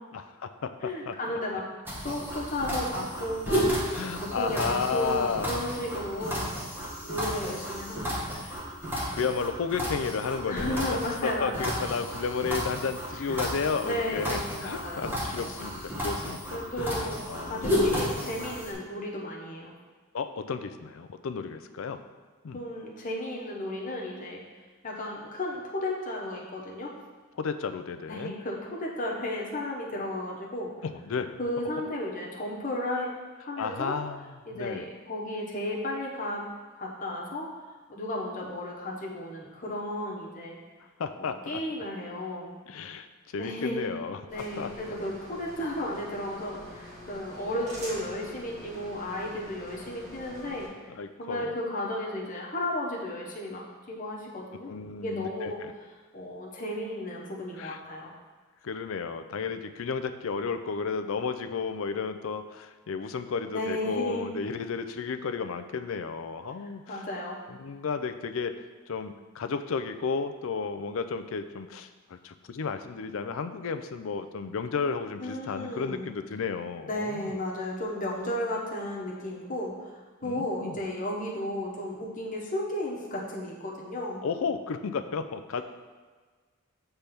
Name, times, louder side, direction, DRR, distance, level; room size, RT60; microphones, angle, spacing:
voice 1, 0.1-1.2 3.9-5.5 8.5-8.6 9.1-17.8 20.1-22.0 22.4-22.6 27.4-28.4 30.8-31.4 33.6-34.9 41.0-41.6 42.7-43.1 43.3-44.7 50.9-51.5 54.7-55.7 57.6-57.8 58.6-67.1 67.5-68.6 68.9-77.3 80.2-80.8 84.2-85.6, left 5 dB, 65° left, 10 dB, 0.4 m, -33 dB
voice 2, 0.8-1.6 2.0-3.7 4.2-6.5 7.0-8.6 10.5-11.8 13.8-15.1 16.5-17.2 17.4-19.7 22.5-24.4 24.8-26.9 28.1-30.7 31.4-33.1 33.4-33.9 34.5-36.5 36.7-37.5 37.9-40.6 41.2-42.5 43.4-43.8 44.3-50.7 51.2-54.7 55.0-55.6 56.1-58.1 63.5-64.3 66.9-67.4 75.2-76.1 76.8-79.9 80.2-84.2, left 1 dB, 40° left, -3 dB, 1.1 m, -34 dB
sound 1, 1.9-18.7, equal, 10° right, 1.2 m, -32 dB
sound 2, 44.3-50.7, left 1 dB, 35° right, 1.8 m, -45 dB
6.8 x 3.4 x 5.8 m, 1.4 s
head